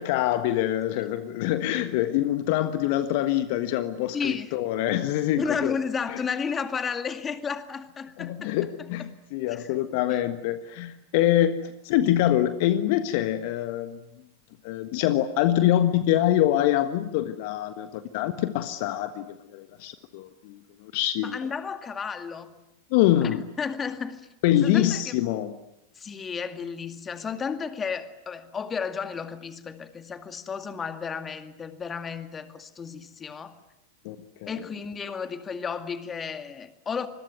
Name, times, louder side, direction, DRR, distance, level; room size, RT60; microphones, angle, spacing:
voice 1, 0.0-5.8 6.1-6.2 8.2-11.6 11.8-14.0 14.6-21.3 22.9-23.4 24.4-25.5 34.0-34.2 34.4-34.6, left 13 dB, 50° left, 1.4 m, -25 dB
voice 2, 4.1-4.5 5.4-8.5 9.5-9.8 10.1-10.2 21.2-22.6 23.2-24.3 24.6-25.1 26.0-33.6 34.5-37.1, left 6 dB, 20° left, 2.1 m, -32 dB
27.0 x 21.5 x 9.4 m
figure-of-eight pair, 90°, 0 cm